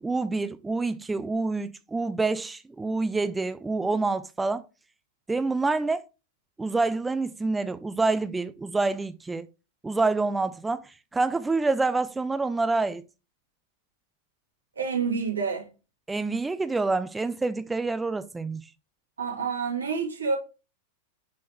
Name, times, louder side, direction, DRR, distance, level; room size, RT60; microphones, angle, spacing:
voice 1, 0.0-4.7 5.3-6.0 6.6-9.5 9.8-13.0 16.1-18.6, right 3 dB, 10° right, 0.4 m, -27 dB
voice 2, 14.8-15.7 19.2-20.4, right 5 dB, 80° right, 2.4 m, -28 dB
9.9 x 4.2 x 3.0 m
figure-of-eight pair, 95°, 0 cm